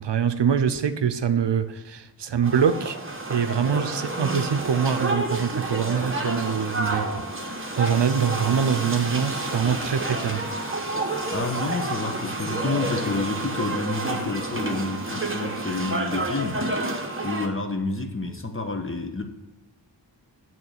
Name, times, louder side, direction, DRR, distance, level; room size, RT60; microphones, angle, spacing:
voice 1, 0.0-3.0 3.3-10.4, right 7 dB, 75° right, 0.6 m, -24 dB
sound 1, 2.4-17.5, right 2 dB, 30° right, 1.2 m, -29 dB
voice 2, 11.3-16.6 17.2-19.2, left 3 dB, 30° left, 1.0 m, -29 dB
8.5 x 3.7 x 6.6 m
wide cardioid pair, 60°, 43 cm